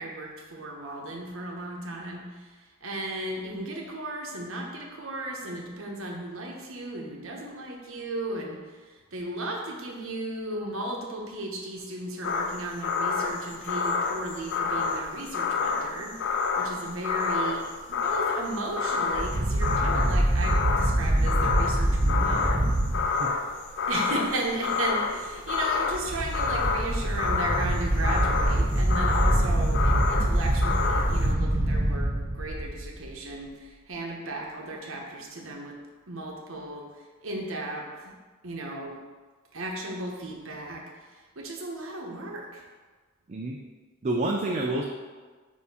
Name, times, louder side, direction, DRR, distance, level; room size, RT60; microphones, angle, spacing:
voice 1, 0.0-17.6 17.9-22.7 23.9-35.8 36.1-36.9 37.2-38.1 38.4-39.0 39.5-42.6, right 2 dB, 80° right, -1 dB, 1.0 m, -35 dB
sound 1, 12.2-31.3, left 5 dB, 60° left, 0.4 m, -29 dB
sound 2, 19.1-23.0 25.8-33.1, right 1 dB, 5° right, 1.8 m, -25 dB
voice 2, 44.0-44.8, right 2 dB, 35° right, 0 dB, 0.4 m, -28 dB
6.3 x 2.8 x 5.5 m, 1.4 s
head